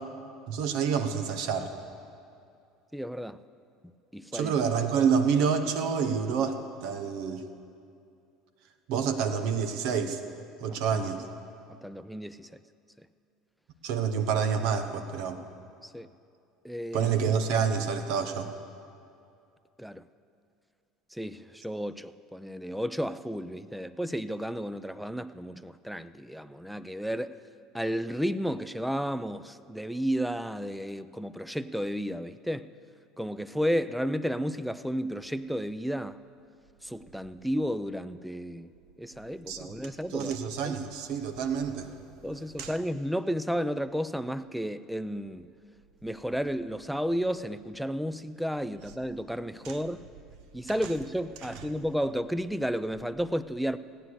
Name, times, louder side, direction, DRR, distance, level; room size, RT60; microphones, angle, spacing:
voice 1, 0.5-1.8 4.3-7.5 8.9-10.2 10.6-11.3 13.8-15.4 16.9-18.5 39.5-42.0 42.3-42.8 49.6-49.8 50.7-50.9 51.4-51.7, right 6 dB, 65° right, 7 dB, 1.1 m, -28 dB
voice 2, 2.9-3.4 4.1-4.5 11.8-12.5 15.9-16.1 16.6-17.1 19.8-20.0 21.1-27.4 27.7-32.7 33.2-36.2 36.8-38.7 39.0-40.3 40.6-40.8 42.2-45.5 46.0-50.0 50.5-53.8, equal, ahead, 13 dB, 0.5 m, -32 dB
16.5 x 9.9 x 6.5 m, 2.5 s
hypercardioid pair, 70°, 0 cm